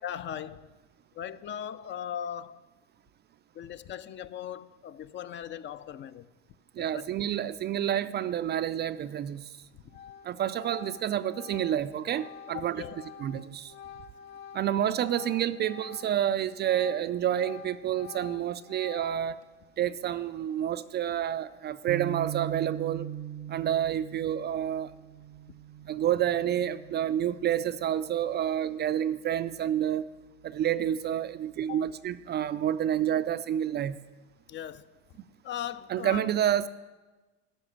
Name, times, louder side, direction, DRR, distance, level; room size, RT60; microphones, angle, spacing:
voice 1, 0.0-0.7 1.1-2.6 3.5-6.3 6.8-7.1 12.5-13.0 31.7-31.8 34.5-34.9 35.4-36.3, left 9 dB, 35° left, 0.5 m, -38 dB
voice 2, 6.8-9.4 10.2-12.8 13.2-13.7 14.5-19.4 19.8-23.1 23.5-24.9 25.9-30.0 30.4-34.0 35.9-36.7, right 10 dB, 30° right, 0.4 m, -29 dB
Organ, 9.3-9.6 9.9-16.2 16.5-19.4, left 8 dB, 75° left, 0.8 m, -47 dB
sound 1, 21.9-28.3, right 11 dB, 80° right, 0.8 m, -40 dB
13.0 x 6.0 x 8.6 m
supercardioid pair, 100°, 34 cm